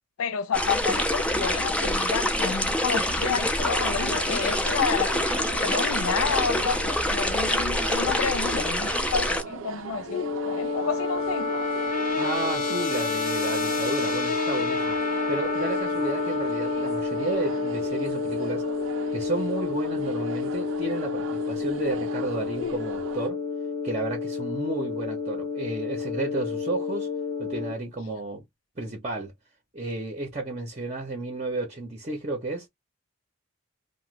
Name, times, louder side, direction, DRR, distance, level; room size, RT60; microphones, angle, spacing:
voice 1, 0.2-11.5, left 6 dB, 80° left, 0.4 m, -30 dB
sound 1, 0.5-9.4, left 1 dB, 5° left, 0.4 m, -26 dB
sound 2, 3.6-23.3, right 6 dB, 65° right, 0.5 m, -40 dB
sound 3, 10.1-27.7, left 4 dB, 35° left, 0.8 m, -29 dB
voice 2, 12.2-15.0 15.3-18.6 19.1-23.4 23.8-27.1 27.4-28.4 28.8-29.3 29.7-32.7, right 2 dB, 30° right, 0.7 m, -32 dB
2.9 x 2.2 x 3.1 m
head